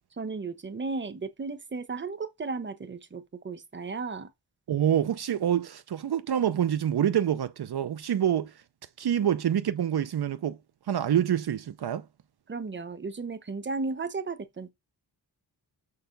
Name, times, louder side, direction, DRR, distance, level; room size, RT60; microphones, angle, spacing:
voice 1, 0.2-4.3 12.5-14.7, right 4 dB, 25° right, 1.0 m, -34 dB
voice 2, 4.7-8.6 9.0-10.6 10.9-12.0, right 10 dB, 65° right, 0.7 m, -26 dB
6.8 x 6.7 x 5.2 m
wide cardioid pair, 155°, 41 cm